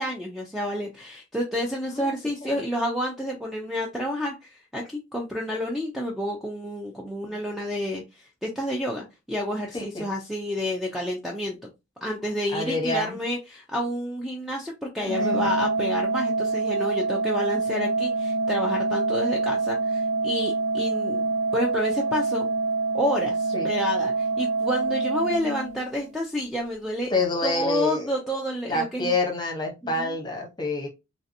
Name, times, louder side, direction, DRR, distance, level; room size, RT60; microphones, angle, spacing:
voice 1, 0.0-11.7 12.0-21.3 21.5-22.5 22.9-27.1 27.4-29.1 29.8-30.2, left 1 dB, ahead, 0.4 m, -29 dB
voice 2, 1.9-2.5 9.7-10.1 12.5-13.2 15.2-15.5 23.5-23.7 27.1-28.1 28.7-30.9, left 2 dB, 20° left, 0.9 m, -27 dB
Organ, 15.0-26.1, right 3 dB, 90° right, 1.9 m, -26 dB
3.2 x 2.7 x 2.6 m
head